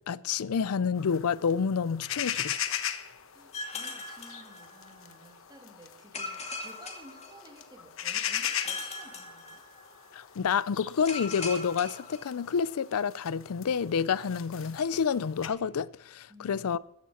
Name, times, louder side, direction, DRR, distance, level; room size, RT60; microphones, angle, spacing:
voice 1, 0.1-2.8 10.1-16.8, left 6 dB, 80° left, 0.5 m, -29 dB
sound 1, 1.0-15.5, left 10 dB, 60° left, 1.1 m, -39 dB
voice 2, 3.3-9.6 16.3-16.8, right 1 dB, 20° right, 2.7 m, -54 dB
sound 2, 3.5-5.1 6.1-7.9 8.4-10.1 11.1-12.8, left 3 dB, 30° left, 2.2 m, -40 dB
14.0 x 11.0 x 5.7 m
head